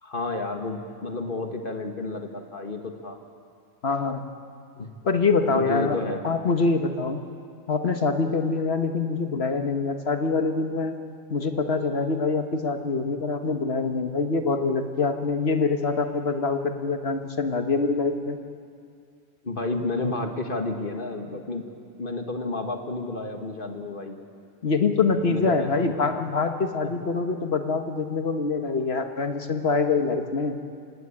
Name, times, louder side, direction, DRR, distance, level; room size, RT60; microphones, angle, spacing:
voice 1, 0.0-3.2 4.8-4.9 5.5-6.2 19.4-21.6 22.0-24.2 25.2-26.2, left 2 dB, 55° left, 4 dB, 1.9 m, -31 dB
voice 2, 3.8-4.2 4.8-6.0 6.2-7.2 7.7-10.9 11.3-18.4 24.6-30.6, left 4 dB, 70° left, 6 dB, 1.6 m, -25 dB
25.0 x 18.5 x 8.7 m, 2.3 s
omnidirectional pair, 1.1 m